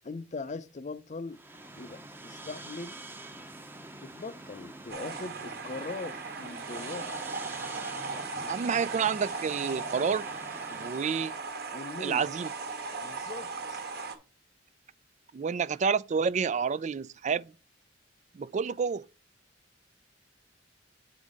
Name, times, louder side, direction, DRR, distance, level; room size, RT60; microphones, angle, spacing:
voice 1, 0.0-1.4 1.8-3.0 4.0-7.1 11.7-12.3 13.0-13.8, left 3 dB, 40° left, 0.6 m, -40 dB
sound 1, 1.3-11.4, right 2 dB, 10° right, 0.8 m, -46 dB
sound 2, 4.9-14.2, right 4 dB, 55° right, 1.3 m, -38 dB
voice 2, 8.5-10.3 10.7-11.3 12.0-12.5 15.3-17.5 18.3-19.1, right 6 dB, 40° right, 0.4 m, -29 dB
8.2 x 4.0 x 4.9 m
head